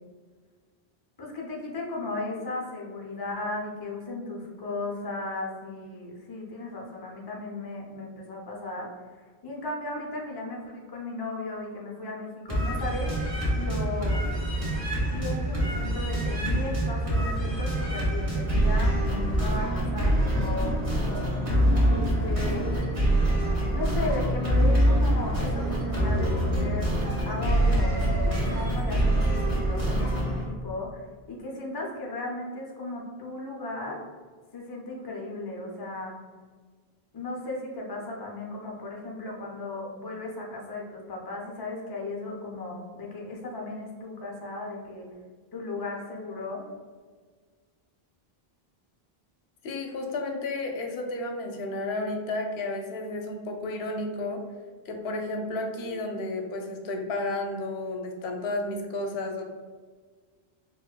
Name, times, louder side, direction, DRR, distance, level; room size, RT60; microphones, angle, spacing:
voice 1, 1.2-13.1 13.5-14.2 15.0-20.8 21.9-22.7 23.7-34.0 34.5-36.1 37.1-45.1 45.5-46.6, left 2 dB, 40° left, -2 dB, 0.3 m, -36 dB
sound 1, 12.5-30.4, right 1 dB, 35° right, 1.0 m, -25 dB
voice 2, 49.6-54.4 54.9-59.4, left 2 dB, 90° left, 3 dB, 0.8 m, -32 dB
4.0 x 2.2 x 2.2 m, 1.5 s
omnidirectional pair, 1.0 m